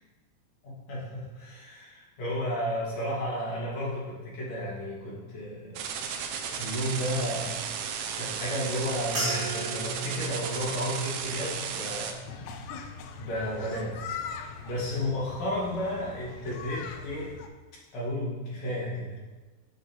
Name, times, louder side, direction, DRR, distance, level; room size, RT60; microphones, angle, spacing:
voice 1, 0.6-5.9 6.6-7.6 8.1-12.2 13.2-14.2 14.6-17.3 17.9-19.2, equal, 65° left, -6 dB, 3.3 m, -33 dB
sound 1, 5.8-12.1, right 7 dB, 80° right, 1.9 m, -34 dB
sound 2, 9.1-13.7 14.0-14.6 15.2-15.5, right 3 dB, 35° right, 2.8 m, -38 dB
sound 3, 12.3-17.5, left 6 dB, 85° left, 2.0 m, -41 dB
8.9 x 6.3 x 3.0 m, 1.3 s
omnidirectional pair, 3.3 m